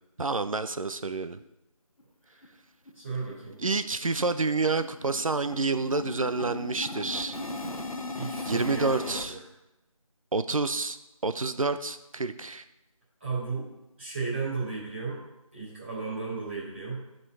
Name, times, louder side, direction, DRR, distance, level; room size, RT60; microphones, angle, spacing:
voice 1, 0.2-1.4 3.6-7.4 8.4-9.3 10.3-11.0 11.2-12.6, right 3 dB, 65° right, 11 dB, 0.6 m, -28 dB
sound 1, 2.0-2.1 2.4-2.5 2.9-3.0 3.3-9.3, left 2 dB, 70° left, 0.9 m, -38 dB
voice 2, 2.9-3.6 8.2-9.4 13.2-13.7 14.0-15.2 15.5-17.0, right 4 dB, 20° right, -9 dB, 2.4 m, -34 dB
10.5 x 4.4 x 4.6 m, 0.95 s
figure-of-eight pair, 175°, 18 cm